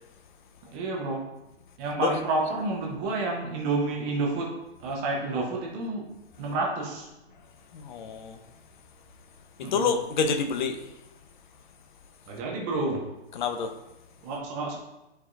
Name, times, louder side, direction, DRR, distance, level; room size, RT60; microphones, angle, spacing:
voice 1, 0.6-1.3 1.8-6.1 6.4-7.1 9.6-9.9 12.3-13.1 14.2-14.8, right 3 dB, 10° right, 0.4 m, -30 dB
voice 2, 7.7-8.4 9.6-10.9 13.3-13.8, left 5 dB, 45° left, 0.9 m, -28 dB
10.5 x 4.7 x 2.5 m
hypercardioid pair, 145°, 33 cm